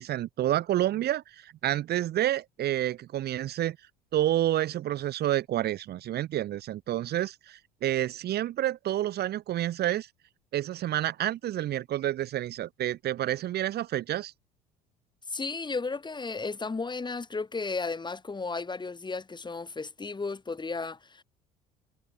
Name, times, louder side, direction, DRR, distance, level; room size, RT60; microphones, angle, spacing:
voice 1, 0.0-3.8 4.1-10.1 10.5-14.3, right 13 dB, 50° right, 2.9 m, -29 dB
voice 2, 15.3-21.2, left 4 dB, 20° left, 7.8 m, -34 dB
figure-of-eight pair, 60°, 21 cm